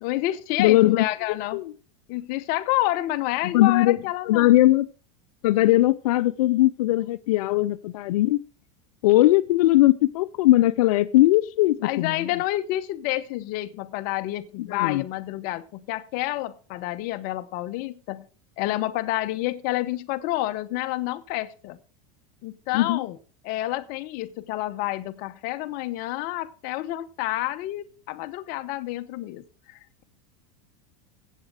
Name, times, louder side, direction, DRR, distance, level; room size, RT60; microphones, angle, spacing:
voice 1, 0.0-1.6 2.1-4.5 11.8-18.2 18.6-21.8 22.4-23.2 23.4-30.0, left 16 dB, 55° left, 1.0 m, -29 dB
voice 2, 0.6-1.0 1.5-1.7 3.4-4.0 4.3-4.9 5.4-8.4 9.0-12.3 14.7-15.0 22.7-23.0, left 16 dB, 75° left, 0.6 m, -19 dB
15.5 x 8.4 x 4.9 m
supercardioid pair, 125°, 19 cm